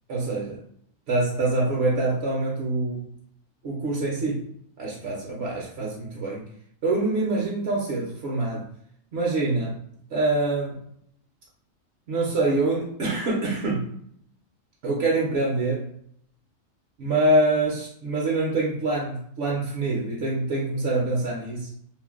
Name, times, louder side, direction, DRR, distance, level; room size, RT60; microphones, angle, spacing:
voice 1, 0.1-0.7 1.1-3.1 3.6-4.5 4.8-6.4 6.8-8.7 9.1-9.8 10.1-10.8 12.1-13.9 14.8-15.9 17.0-21.7, right 2 dB, 60° right, -4 dB, 0.9 m, -25 dB
2.5 x 2.2 x 3.5 m, 0.67 s
omnidirectional pair, 1.4 m